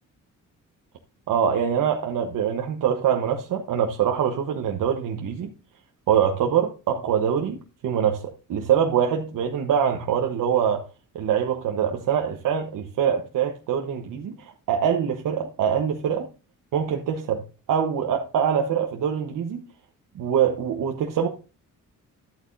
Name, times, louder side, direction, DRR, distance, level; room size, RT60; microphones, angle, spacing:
voice 1, 1.3-5.5 6.1-8.2 8.5-10.9 11.1-16.3 16.7-17.4 17.7-19.6 20.1-21.3, right 8 dB, 80° right, 1.1 m, -24 dB
11.5 x 8.5 x 2.6 m
cardioid pair, 85°, 32 cm